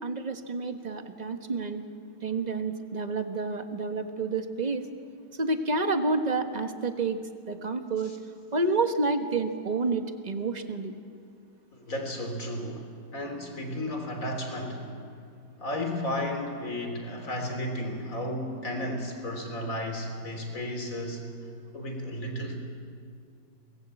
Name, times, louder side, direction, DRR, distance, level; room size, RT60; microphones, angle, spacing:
voice 1, 0.0-1.8 2.2-4.8 5.4-7.2 7.5-8.1 8.5-11.0, right 3 dB, 25° right, 7 dB, 1.2 m, -29 dB
voice 2, 11.7-14.9 15.6-21.3 21.7-22.6, left 1 dB, 50° left, 3 dB, 3.8 m, -33 dB
24.0 x 20.0 x 8.4 m, 2.4 s
omnidirectional pair, 1.8 m